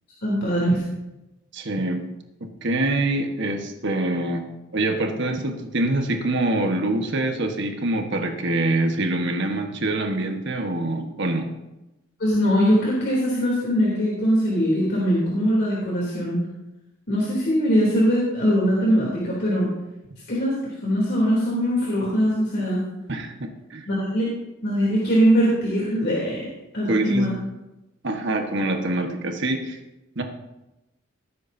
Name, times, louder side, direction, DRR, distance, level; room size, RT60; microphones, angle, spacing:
voice 1, 0.2-0.8 12.2-16.4 17.1-19.7 20.3-20.5 20.8-22.8 23.9-24.3 24.6-26.5 26.7-27.3, equal, 55° left, -6 dB, 3.2 m, -21 dB
voice 2, 1.5-2.1 2.4-4.4 4.7-11.5 23.1-23.8 26.9-27.3 28.0-29.8 30.1-30.2, right 2 dB, 60° right, 4 dB, 1.4 m, -25 dB
18.5 x 9.6 x 2.8 m, 0.98 s
head